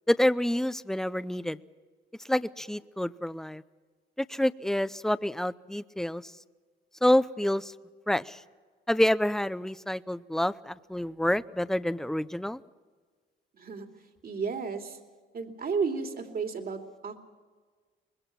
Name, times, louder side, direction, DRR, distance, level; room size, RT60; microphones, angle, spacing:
voice 1, 0.1-1.6 2.3-3.6 4.2-6.3 7.0-7.7 8.1-8.4 8.9-12.6, left 1 dB, ahead, 15 dB, 0.6 m, -27 dB
voice 2, 13.5-13.9 14.2-15.0 15.3-17.2, right 5 dB, 50° right, 4 dB, 2.7 m, -33 dB
24.5 x 21.0 x 5.9 m, 1.5 s
cardioid pair, 90°, 20 cm